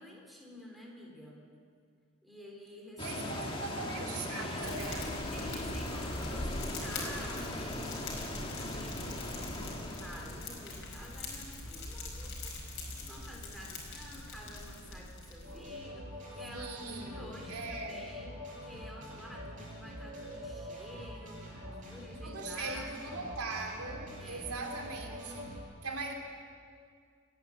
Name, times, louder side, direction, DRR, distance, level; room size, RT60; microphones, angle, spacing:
voice 1, 0.0-1.4 2.2-3.4 4.4-4.9 5.3-8.2 8.5-12.5 13.0-23.0 24.2-24.5, equal, ahead, -2 dB, 3.7 m, -50 dB
sound 1, 3.0-11.4, left 1 dB, 25° left, 2.0 m, -39 dB
voice 2, 3.0-5.2 15.5-15.6 16.5-18.1 19.5-19.7 21.6-21.9 22.2-25.5 25.8-26.1, right 3 dB, 90° right, 2 dB, 3.2 m, -40 dB
Fire, 4.6-15.8, left 2 dB, 55° left, 5.1 m, -43 dB
sound 2, 15.4-25.6, left 1 dB, 35° right, 6.7 m, -45 dB
29.5 x 11.0 x 8.5 m, 2.1 s
head